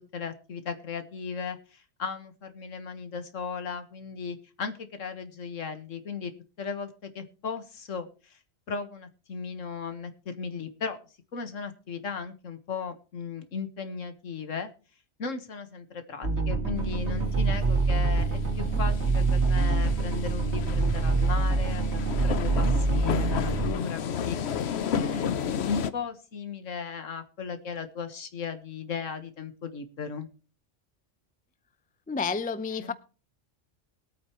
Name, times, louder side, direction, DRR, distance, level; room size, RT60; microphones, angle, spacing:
voice 1, 0.0-6.3 6.6-8.4 8.7-11.0 11.3-14.7 15.2-30.3 32.8-32.9, left 5 dB, 75° left, 1.8 m, -36 dB
sound 1, 16.2-23.7, right 3 dB, 60° right, 2.1 m, -25 dB
sound 2, 16.8-25.9, left 7 dB, 60° left, 0.9 m, -33 dB
voice 2, 32.1-32.9, left 5 dB, 10° left, 0.4 m, -30 dB
21.0 x 8.7 x 3.0 m
omnidirectional pair, 1.3 m